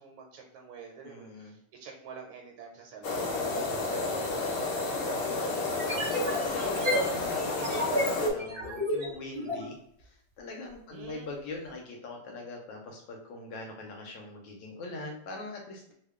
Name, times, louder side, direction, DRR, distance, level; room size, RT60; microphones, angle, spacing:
voice 1, 0.0-6.0 6.7-6.9 10.9-11.3, right 6 dB, 80° right, 0 dB, 1.4 m, -48 dB
voice 2, 1.0-1.6 4.9-5.5 6.3-15.9, left 2 dB, 70° left, 1 dB, 1.3 m, -42 dB
sound 1, 3.0-8.3, left 3 dB, 85° left, 1.5 m, -31 dB
sound 2, 5.7-9.7, equal, 40° right, 0.8 m, -31 dB
3.4 x 2.2 x 3.5 m, 0.72 s
omnidirectional pair, 2.4 m